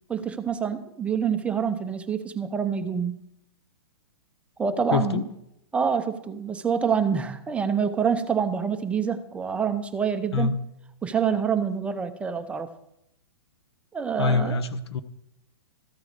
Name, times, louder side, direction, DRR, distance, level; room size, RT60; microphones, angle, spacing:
voice 1, 0.1-3.2 4.6-5.2 5.7-10.5 11.0-12.7 13.9-14.6, right 7 dB, 10° right, 8 dB, 0.5 m, -26 dB
voice 2, 4.9-5.2 10.3-10.5 14.2-15.0, left 4 dB, 80° left, 12 dB, 0.8 m, -24 dB
13.5 x 4.8 x 6.4 m, 0.81 s
hypercardioid pair, 145°, 14 cm